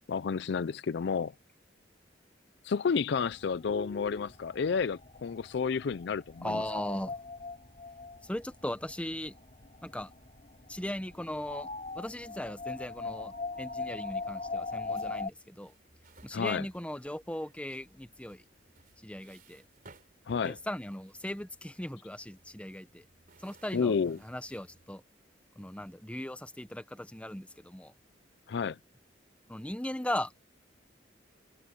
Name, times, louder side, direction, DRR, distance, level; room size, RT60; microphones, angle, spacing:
voice 1, 0.1-1.3 2.6-6.6 16.3-16.6 20.3-20.6 23.7-24.2 28.5-28.8, left 5 dB, 60° left, 0.4 m, -30 dB
sound 1, 3.2-15.3, left 3 dB, 35° left, 3.6 m, -41 dB
voice 2, 6.4-7.2 8.2-9.3 9.8-10.1 10.7-11.7 11.9-15.7 16.2-18.4 19.0-19.6 20.4-23.0 23.4-23.9 24.2-25.0 25.6-27.9 29.5-30.3, left 1 dB, 5° left, 0.9 m, -38 dB
sound 2, 14.9-24.9, right 3 dB, 50° right, 3.3 m, -60 dB
head